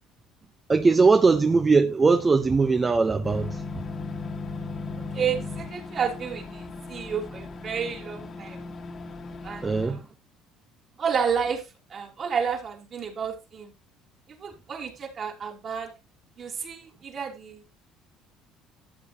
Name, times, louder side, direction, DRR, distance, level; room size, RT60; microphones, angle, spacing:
voice 1, 0.7-3.6 9.6-10.0, right 4 dB, 25° right, 0.9 m, -20 dB
sound 1, 3.2-9.9, left 3 dB, 35° left, 1.8 m, -37 dB
voice 2, 5.1-8.6 9.4-10.0 11.0-11.6 11.9-13.7 14.3-15.9 16.4-17.6, right 7 dB, 40° right, 3.3 m, -31 dB
14.0 x 8.2 x 2.9 m
cardioid pair, 110°, 0 cm